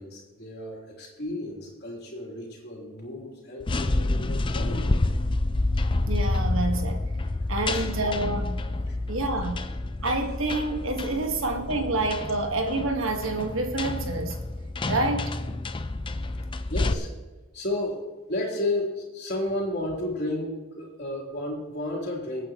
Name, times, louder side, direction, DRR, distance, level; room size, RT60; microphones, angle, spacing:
voice 1, 0.0-5.0 7.7-7.9 16.3-16.4 16.7-17.1 17.5-22.5, left 1 dB, 50° left, -3 dB, 3.7 m, -32 dB
sound 1, 3.6-16.9, left 2 dB, 25° left, 0.5 m, -28 dB
voice 2, 6.1-7.0 7.5-8.6 9.1-9.6 10.0-14.4 14.9-15.3, right 2 dB, 70° right, 4 dB, 1.7 m, -28 dB
24.0 x 9.0 x 3.1 m, 1.2 s
head